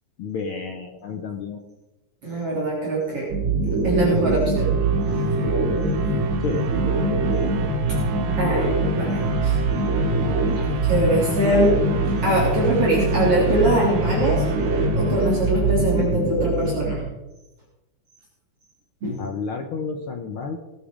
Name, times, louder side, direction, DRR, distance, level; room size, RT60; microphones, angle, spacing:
voice 1, 0.2-1.6 6.4-6.7 19.2-20.6, left 4 dB, 70° left, 5 dB, 1.3 m, -30 dB
voice 2, 2.2-3.3 3.8-4.7 5.1-5.5 8.4-9.6 10.8-11.8 12.2-14.4 14.9-17.0 19.0-19.2, right 1 dB, 45° right, -5 dB, 4.0 m, -23 dB
sound 1, 3.0-16.1, right 5 dB, 90° right, 3.0 m, -33 dB
sound 2, 3.3-17.1, right 2 dB, 70° right, 4.5 m, -23 dB
18.5 x 9.4 x 5.0 m, 1.0 s
omnidirectional pair, 3.6 m